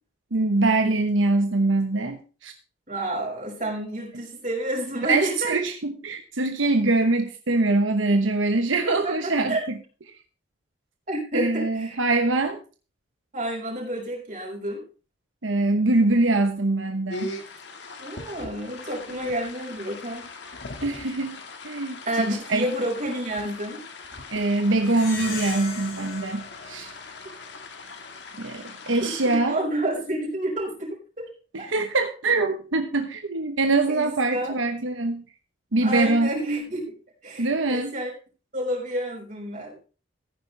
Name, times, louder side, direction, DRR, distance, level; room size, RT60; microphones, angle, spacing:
voice 1, 0.3-2.5 5.1-9.5 11.3-12.6 15.4-17.3 20.8-21.4 21.6-22.6 24.3-26.9 28.4-29.6 31.5-35.2 35.7-36.3 37.4-37.9, right 2 dB, 90° right, 6 dB, 1.1 m, -23 dB
voice 2, 2.9-5.5 8.7-9.6 11.1-12.0 13.3-14.8 18.0-20.3 22.0-23.8 29.0-31.3 31.6-31.7 33.9-34.6 35.8-37.0 37.2-38.1 38.5-39.8, right 1 dB, 40° right, -2 dB, 5.4 m, -29 dB
sound 1, 17.1-29.4, left 3 dB, 65° left, 1.8 m, -40 dB
Plucked string instrument, 24.8-27.6, left 4 dB, 85° left, 4.4 m, -37 dB
15.0 x 9.8 x 3.3 m, 0.35 s
head